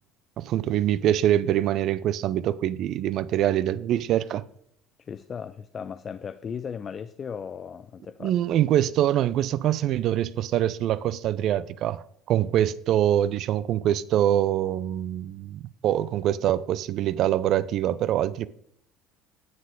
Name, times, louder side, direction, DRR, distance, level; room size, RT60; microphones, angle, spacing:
voice 1, 0.4-4.4 8.2-18.5, right 11 dB, 50° right, 0.4 m, -24 dB
voice 2, 5.0-8.4, left 7 dB, 35° left, 0.3 m, -36 dB
9.6 x 7.2 x 3.7 m
figure-of-eight pair, 60°, 0 cm